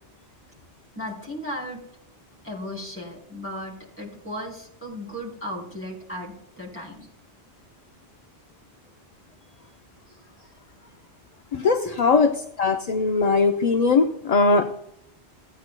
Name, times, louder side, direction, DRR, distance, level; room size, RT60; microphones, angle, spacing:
voice 1, 0.9-1.8 2.4-7.1 10.1-10.2 11.8-12.0, equal, 10° left, -4 dB, 3.8 m, -36 dB
voice 2, 11.5-12.3 12.6-14.8, left 4 dB, 45° left, 5 dB, 0.6 m, -20 dB
16.5 x 9.3 x 2.2 m, 0.72 s
omnidirectional pair, 1.1 m